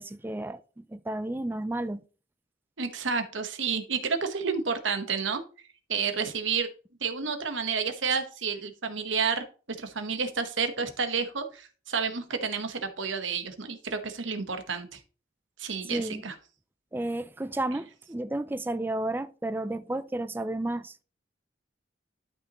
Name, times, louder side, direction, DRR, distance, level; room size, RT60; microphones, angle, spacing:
voice 1, 0.0-2.0 15.9-16.2 16.9-21.0, right 1 dB, 10° right, 0.3 m, -32 dB
voice 2, 2.8-5.4 5.9-6.7 7.0-9.4 9.8-15.0 15.6-16.3, right 5 dB, 85° right, 1.2 m, -30 dB
12.0 x 5.6 x 3.0 m
head